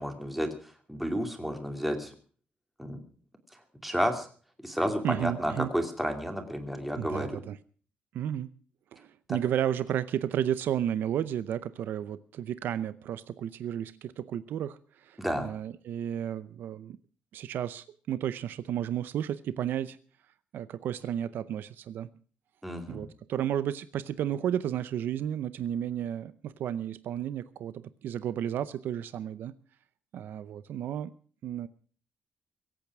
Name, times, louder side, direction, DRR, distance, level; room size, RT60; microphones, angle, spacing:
voice 1, 0.0-2.1 2.8-3.0 3.5-4.3 4.6-7.3 15.2-15.5 22.6-23.1, equal, 5° right, 5 dB, 2.5 m, -31 dB
voice 2, 5.0-5.7 7.0-7.6 8.1-8.5 8.9-17.0 17.3-20.0 20.5-22.1 22.9-29.5 30.1-31.1 31.4-31.7, right 10 dB, 75° right, 15 dB, 0.7 m, -32 dB
22.5 x 8.9 x 6.1 m, 0.44 s
cardioid pair, 160°, 3 cm